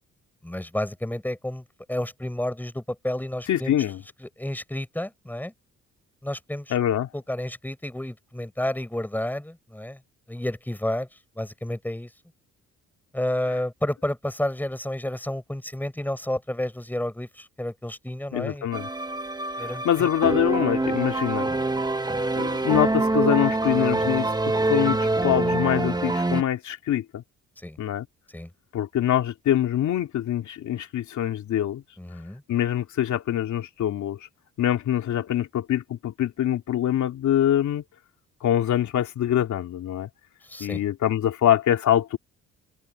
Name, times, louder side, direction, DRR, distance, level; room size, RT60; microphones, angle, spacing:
voice 1, 0.4-3.7 4.2-5.5 6.2-6.7 7.1-10.0 10.3-11.1 11.4-12.1 13.1-18.7 19.6-20.1 27.6-27.8 28.3-28.5 32.0-32.4 40.4-40.8, left 1 dB, 5° left, 6.3 m, -31 dB
voice 2, 3.5-4.0 6.7-7.1 18.3-18.9 19.6-21.5 22.3-24.3 24.6-27.2 27.8-28.1 28.7-31.8 32.5-34.2 34.6-37.8 38.4-40.1 40.6-42.2, left 11 dB, 70° left, 2.7 m, -24 dB
sound 1, 18.7-26.4, right 2 dB, 15° right, 1.5 m, -25 dB
cardioid pair, 90°, 30 cm